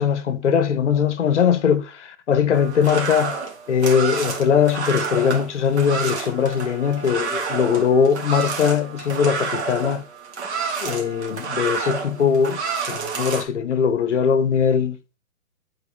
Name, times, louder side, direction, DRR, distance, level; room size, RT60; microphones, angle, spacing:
voice 1, 0.0-3.4 3.7-10.0 10.8-12.6 12.9-15.0, left 7 dB, 55° left, 0.9 m, -20 dB
sound 1, 2.5-13.4, right 5 dB, 50° right, 1.6 m, -29 dB
8.1 x 4.1 x 3.3 m
hypercardioid pair, 150°, 43 cm